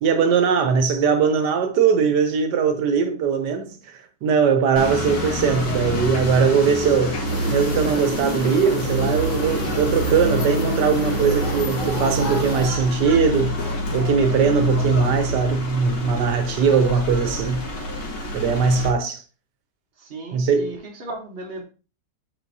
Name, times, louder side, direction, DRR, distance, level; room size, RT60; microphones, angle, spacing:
voice 1, 0.0-7.2 7.5-13.6 13.9-17.7 18.3-19.2 20.3-20.7, right 6 dB, 80° right, 1.4 m, -20 dB
sound 1, 4.8-18.9, equal, 85° left, 2.2 m, -27 dB
sound 2, 7.2-12.7, right 1 dB, 25° left, 1.7 m, -29 dB
voice 2, 20.0-21.6, right 2 dB, 40° right, 1.4 m, -36 dB
7.8 x 5.3 x 2.8 m
omnidirectional pair, 1.8 m